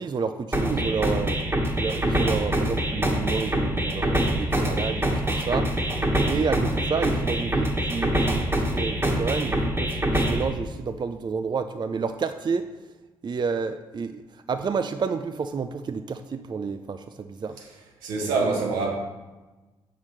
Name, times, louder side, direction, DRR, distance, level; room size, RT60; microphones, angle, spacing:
voice 1, 0.0-1.4 1.8-5.7 6.2-12.7 13.2-14.2 14.5-17.6 18.2-18.4, right 5 dB, 35° right, 9 dB, 0.4 m, -30 dB
sound 1, 0.5-10.5, right 1 dB, 20° right, 1.4 m, -25 dB
voice 2, 18.0-18.9, right 4 dB, 80° right, -1 dB, 1.4 m, -25 dB
7.2 x 5.7 x 3.2 m, 1.2 s
hypercardioid pair, 45°, 13 cm